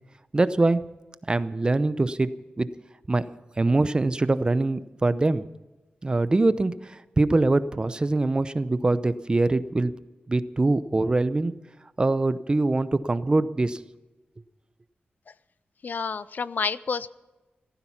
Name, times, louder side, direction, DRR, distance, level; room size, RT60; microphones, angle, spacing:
voice 1, 0.3-0.8 1.3-2.3 2.6-2.7 3.1-3.2 3.6-5.4 6.0-9.9 10.3-11.5 12.0-13.8, right 2 dB, 25° right, 14 dB, 0.7 m, -23 dB
voice 2, 15.8-17.1, left 5 dB, 55° left, 17 dB, 0.5 m, -29 dB
16.5 x 14.5 x 5.8 m, 1.1 s
wide cardioid pair, 130°, 4 cm